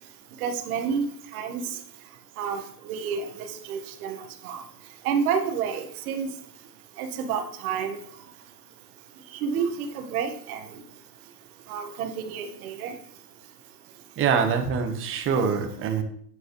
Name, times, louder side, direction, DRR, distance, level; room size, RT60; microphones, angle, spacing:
voice 1, 0.4-1.1 1.3-1.6 2.4-4.6 5.0-6.3 7.0-8.0 9.4-10.7 11.7-12.9, right 6 dB, 60° right, 5 dB, 1.6 m, -29 dB
voice 2, 14.2-16.0, right 6 dB, 25° right, 5 dB, 1.3 m, -24 dB
9.2 x 6.2 x 3.2 m, 0.62 s
hypercardioid pair, 130°, 49 cm